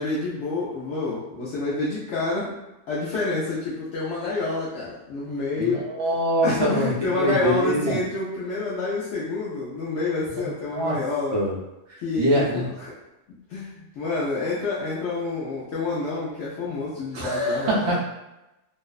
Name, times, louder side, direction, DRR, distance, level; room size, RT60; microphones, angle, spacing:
voice 1, 0.0-2.5 2.9-5.9 6.4-11.4 12.0-12.9 13.5-18.0, left 3 dB, 75° left, -7 dB, 0.9 m, -28 dB
voice 2, 5.6-8.0 10.3-11.0 11.3-11.5 11.9-12.7 17.1-18.0, right 1 dB, 40° right, -4 dB, 0.4 m, -24 dB
2.5 x 2.1 x 2.3 m, 0.95 s
omnidirectional pair, 1.2 m